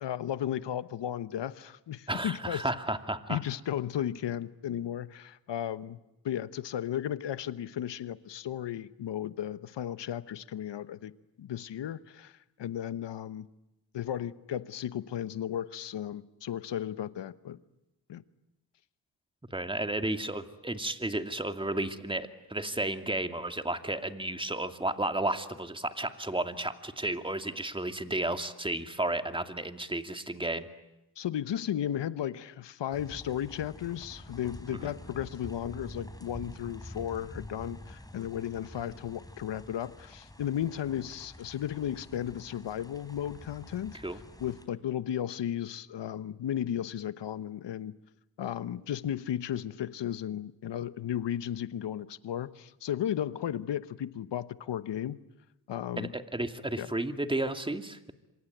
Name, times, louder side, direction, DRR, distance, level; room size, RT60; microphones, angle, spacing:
voice 1, 0.0-2.6 3.3-6.0 6.2-11.1 11.4-13.5 13.9-17.6 18.1-18.2 31.2-44.0 44.4-47.9 48.4-55.2 55.7-56.1 56.8-56.9, left 10 dB, 75° left, 1.1 m, -34 dB
voice 2, 2.1-3.4 19.5-30.7 34.7-34.9 44.0-44.2 56.0-58.1, right 1 dB, 10° right, 2.3 m, -33 dB
sound 1, 32.9-44.7, left 1 dB, 10° left, 4.0 m, -47 dB
26.5 x 24.5 x 9.2 m
cardioid pair, 50°, 42 cm